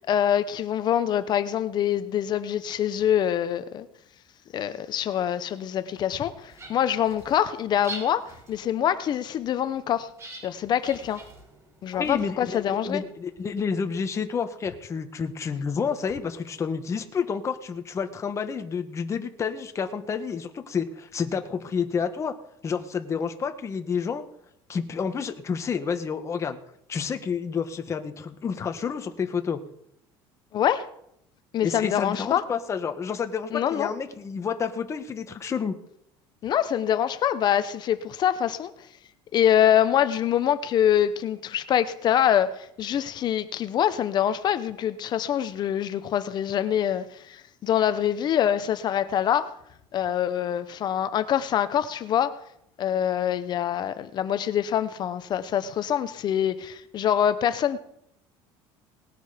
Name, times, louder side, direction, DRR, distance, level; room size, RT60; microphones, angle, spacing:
voice 1, 0.1-3.9 4.5-10.1 10.4-11.2 11.8-13.0 30.5-30.9 31.5-32.4 33.5-33.9 36.4-38.7 39.3-49.5 49.9-52.4 52.8-57.8, left 10 dB, 45° left, 12 dB, 0.9 m, -25 dB
sound 1, 6.3-13.7, right 2 dB, 25° right, 4.1 m, -46 dB
voice 2, 11.9-22.3 22.6-24.2 24.7-26.6 26.9-29.6 31.6-35.8, left 6 dB, 30° left, 7 dB, 1.5 m, -29 dB
19.0 x 10.0 x 5.1 m, 0.76 s
cardioid pair, 140°, 11 cm